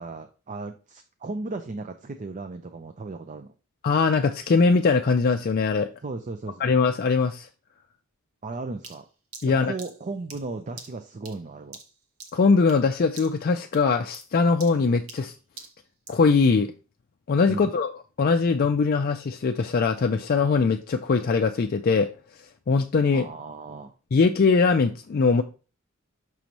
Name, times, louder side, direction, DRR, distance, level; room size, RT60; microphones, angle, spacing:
voice 1, 0.0-3.5 6.0-6.6 8.4-9.1 9.5-11.8 17.5-17.7 23.1-23.9, right 3 dB, 35° right, 8 dB, 0.5 m, -36 dB
voice 2, 3.8-5.9 6.6-7.5 9.4-9.7 12.3-15.3 16.1-16.7 17.3-17.9 18.2-22.1 22.7-23.3 24.1-25.4, left 4 dB, 45° left, 5 dB, 0.4 m, -21 dB
sound 1, 8.8-12.9 13.2-13.5 13.7-16.3, right 4 dB, 70° right, 1.2 m, -46 dB
6.1 x 3.0 x 5.2 m, 0.34 s
head